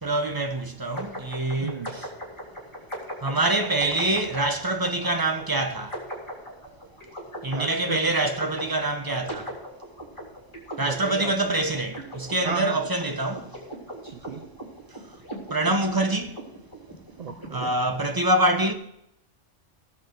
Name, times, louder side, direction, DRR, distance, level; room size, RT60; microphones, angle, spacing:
voice 1, 0.0-2.1 3.2-6.1 7.4-9.6 10.8-13.7 14.9-15.2 15.5-16.4 17.5-18.7, right 2 dB, 20° right, 1.0 m, -26 dB
sound 1, 1.0-17.7, right 1 dB, 20° left, 3.5 m, -39 dB
voice 2, 1.6-1.9 7.5-8.0 10.8-11.3 12.4-12.8 14.0-14.4 17.2-17.7, right 6 dB, 45° right, 0.5 m, -34 dB
17.5 x 7.1 x 4.7 m
omnidirectional pair, 1.3 m